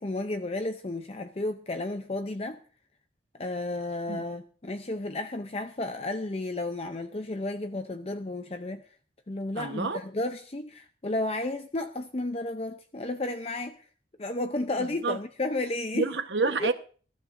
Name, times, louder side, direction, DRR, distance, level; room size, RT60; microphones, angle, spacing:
voice 1, 0.0-2.6 3.4-8.8 9.3-13.8 14.2-16.1 16.6-16.7, left 2 dB, 35° left, 0.6 m, -32 dB
voice 2, 9.5-10.0 14.8-15.2 15.9-16.7, right 4 dB, 80° right, 1.2 m, -29 dB
21.5 x 12.5 x 2.6 m
head